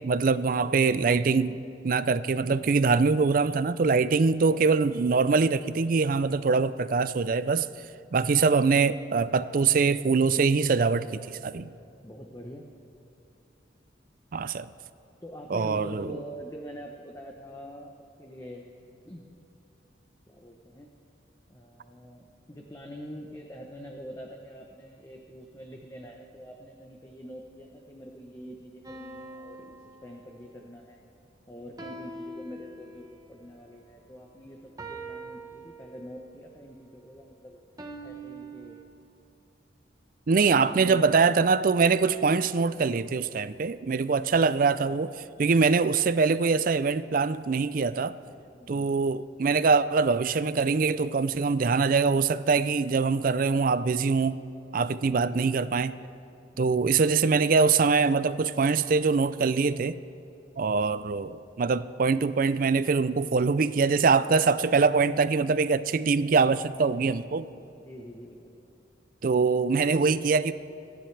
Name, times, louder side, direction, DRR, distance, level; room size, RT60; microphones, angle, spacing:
voice 1, 0.0-7.7 8.1-11.7 14.3-14.7 15.5-16.2 40.3-48.1 48.7-54.4 54.7-55.9 56.6-60.0 60.6-67.5 69.2-70.5, right 4 dB, 50° right, 15 dB, 0.4 m, -23 dB
voice 2, 12.0-12.7 15.2-17.9 18.2-18.7 19.0-19.3 20.3-20.9 21.5-31.0 31.5-37.6 38.0-38.8 40.4-41.4 48.6-48.9 55.0-55.6 67.8-68.5, equal, 15° left, 2 dB, 0.8 m, -45 dB
sound 1, 28.8-30.6 31.8-33.2 34.8-36.3 37.8-38.8, right 2 dB, 20° right, 1.1 m, -43 dB
27.5 x 10.5 x 3.3 m, 2.8 s
head